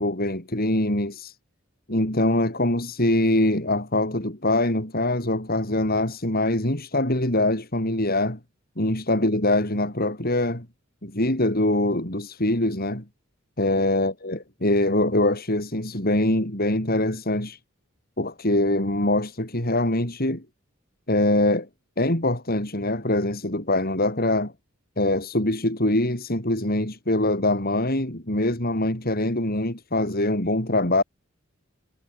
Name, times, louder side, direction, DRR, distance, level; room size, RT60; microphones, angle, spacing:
voice 1, 0.0-1.4 1.9-8.4 8.8-10.7 11.0-13.0 13.6-17.6 18.2-20.4 21.1-21.7 22.0-24.5 25.0-31.0, left 1 dB, 45° left, 5.6 m, -23 dB
head